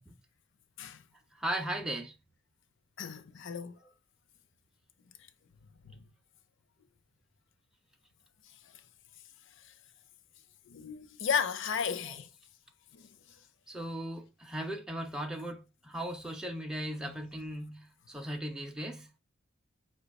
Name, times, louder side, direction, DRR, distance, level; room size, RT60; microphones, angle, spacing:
voice 1, 1.3-2.1 12.0-12.2 13.7-19.1, right 1 dB, 5° right, 0.4 m, -37 dB
voice 2, 3.0-3.8 5.8-6.1 9.6-9.7 10.7-12.3 12.9-13.2 17.1-17.2, left 6 dB, 65° left, 0.5 m, -34 dB
5.2 x 2.2 x 4.0 m
head